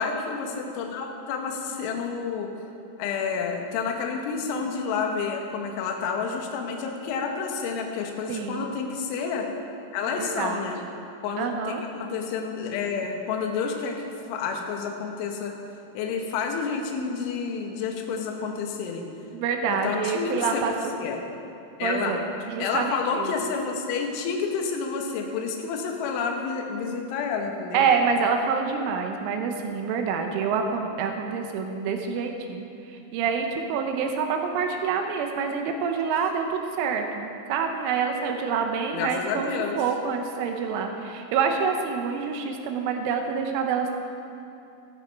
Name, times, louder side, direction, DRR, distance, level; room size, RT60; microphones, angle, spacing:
voice 1, 0.0-2.5 3.0-9.5 9.9-10.8 11.2-11.6 11.9-14.0 14.3-15.5 15.9-19.0 19.7-20.7 21.0-21.2 21.8-22.1 22.6-27.9 38.9-39.8, left 5 dB, 75° left, 2 dB, 3.5 m, -29 dB
voice 2, 8.3-8.7 10.1-10.7 11.4-11.8 19.3-20.7 21.8-23.4 27.7-39.5 39.8-43.9, right 6 dB, 80° right, 4 dB, 3.3 m, -27 dB
13.0 x 12.5 x 4.7 m, 2.7 s
omnidirectional pair, 5.9 m